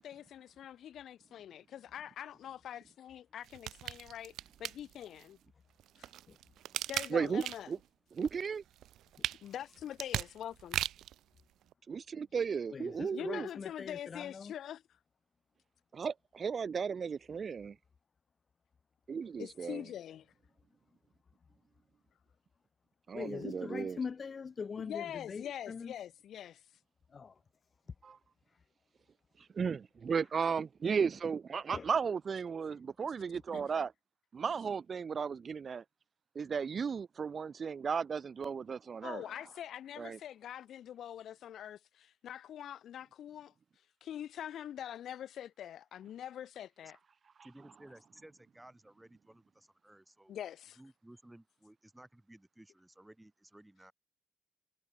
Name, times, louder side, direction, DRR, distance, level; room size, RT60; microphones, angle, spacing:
voice 1, 0.0-4.3 4.6-5.4 6.0-6.1 6.9-7.7 9.4-10.8 13.1-14.8 19.4-20.3 24.8-26.6 33.5-33.6 39.0-43.5 44.0-47.0 50.3-50.8, left 10 dB, 70° left, 1.9 m, -44 dB
sound 1, 3.4-5.2 5.8-7.8 8.2-11.2 11.7-11.8, right 12 dB, 80° right, 1.8 m, -38 dB
voice 2, 7.1-7.8 8.1-8.6 11.9-13.5 16.0-17.8 19.1-19.8 23.1-24.0 28.0-28.2 29.5-33.9 34.3-35.8 36.4-39.2 40.0-40.2, right 6 dB, 45° right, 2.2 m, -35 dB
voice 3, 12.7-14.5 23.1-25.9 27.1-27.4 30.4-30.5 31.7-31.9, left 5 dB, 40° left, 3.4 m, -42 dB
voice 4, 47.4-50.4 50.8-53.9, right 1 dB, 10° right, 4.1 m, -57 dB
cardioid pair, 90°, 0 cm